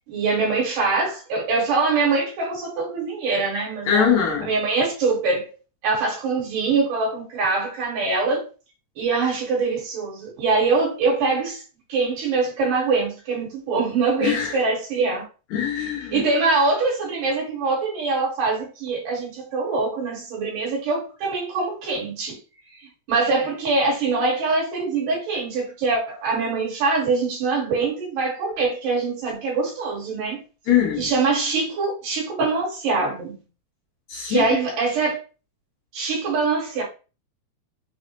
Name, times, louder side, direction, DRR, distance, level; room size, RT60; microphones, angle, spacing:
voice 1, 0.1-4.1 4.5-5.5 5.8-8.5 9.0-11.6 11.9-15.2 16.1-22.4 23.1-30.4 31.0-33.4 34.3-35.2 35.9-36.8, right 4 dB, 75° right, 2.9 m, -23 dB
voice 2, 3.9-4.5 14.2-14.6 15.5-16.2 30.7-31.1 34.1-34.5, left 8 dB, 70° left, 1.8 m, -22 dB
5.7 x 2.1 x 2.8 m
omnidirectional pair, 3.9 m